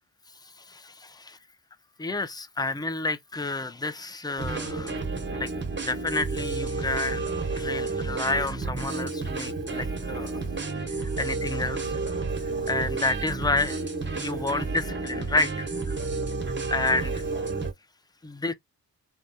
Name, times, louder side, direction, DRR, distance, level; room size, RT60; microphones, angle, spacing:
voice 1, 0.4-1.4 2.0-5.0 5.2-5.5 5.8-10.4 10.9-12.0 12.4-16.0 16.7-17.2 18.2-18.5, left 3 dB, 10° left, 0.6 m, -30 dB
sound 1, 4.4-17.7, right 3 dB, 30° right, 1.2 m, -31 dB
3.1 x 2.3 x 2.6 m
supercardioid pair, 50°, 38 cm